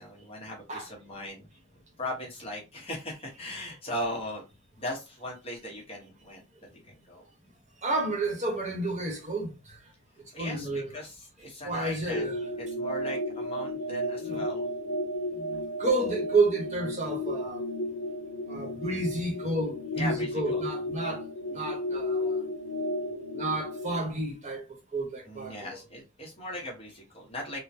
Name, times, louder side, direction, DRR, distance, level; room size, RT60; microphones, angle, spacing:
voice 1, 0.0-1.5 2.0-4.4 4.8-6.4 7.1-7.3 10.3-10.7 10.9-12.3 12.8-14.7 20.0-20.6 25.3-27.6, left 1 dB, 30° left, 1.2 m, -38 dB
voice 2, 7.8-9.8 10.4-11.0 11.6-12.5 14.2-14.5 15.4-17.6 18.5-21.2 21.5-22.4 23.3-24.6 24.9-25.8, right 2 dB, 35° right, 1.1 m, -31 dB
sound 1, 12.1-24.0, left 1 dB, 75° left, 0.6 m, -33 dB
3.7 x 2.2 x 2.8 m
head